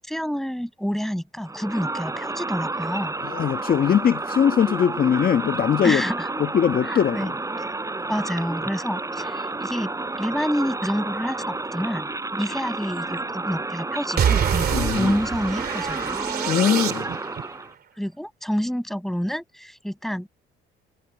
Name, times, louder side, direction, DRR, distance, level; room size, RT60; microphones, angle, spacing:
voice 1, 0.1-3.1 5.8-6.3 6.9-7.3 8.1-9.9 10.2-16.0 18.0-20.3, equal, ahead, 8.0 m, -28 dB
Crowd, 1.4-17.7, right 2 dB, 15° right, 4.1 m, -31 dB
voice 2, 3.2-6.0 6.4-7.3 14.7-15.1 16.5-17.1, left 8 dB, 45° left, 1.5 m, -21 dB
sound 1, 14.2-17.4, right 8 dB, 50° right, 2.9 m, -25 dB
cardioid pair, 95°, 21 cm